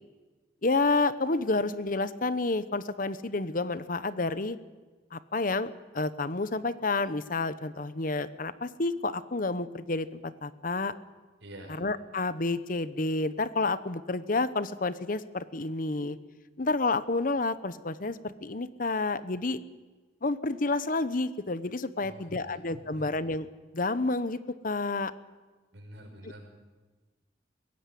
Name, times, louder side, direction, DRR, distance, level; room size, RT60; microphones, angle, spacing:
voice 1, 0.6-4.6 5.1-10.9 11.8-16.2 16.6-19.6 20.2-23.5 23.7-24.4 24.6-25.1, left 3 dB, 50° left, 14 dB, 1.0 m, -30 dB
voice 2, 11.4-11.7 22.0-23.3 25.7-26.4, right 1 dB, 85° right, 3 dB, 6.1 m, -48 dB
22.0 x 16.5 x 9.4 m, 1.3 s
head